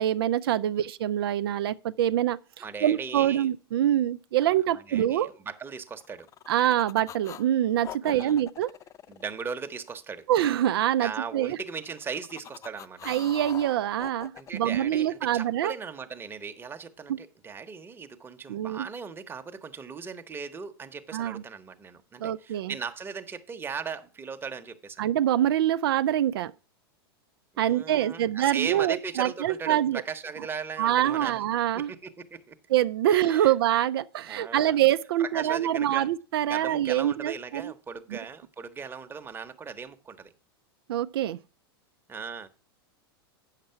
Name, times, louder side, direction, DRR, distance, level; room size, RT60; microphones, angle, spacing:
voice 1, 0.0-2.4 2.8-5.3 6.5-8.7 10.3-11.6 13.1-15.7 17.1-17.2 18.5-18.9 21.1-21.4 22.2-22.7 25.0-26.5 27.6-30.0 30.8-31.9 32.7-37.7 38.1-38.2 40.9-41.4, right 12 dB, 70° right, 0.4 m, -25 dB
voice 2, 2.6-3.5 4.4-6.3 8.0-8.4 9.1-10.3 11.0-13.1 14.3-25.0 27.5-31.4 31.7-32.5 33.1-33.5 34.3-34.8 35.2-36.1 36.5-40.3 42.1-42.5, right 5 dB, 15° right, 1.0 m, -38 dB
sound 1, 6.0-7.5 7.8-10.0 11.8-14.8, left 10 dB, 25° left, 0.4 m, -43 dB
8.7 x 6.7 x 5.6 m
hypercardioid pair, 105°, 13 cm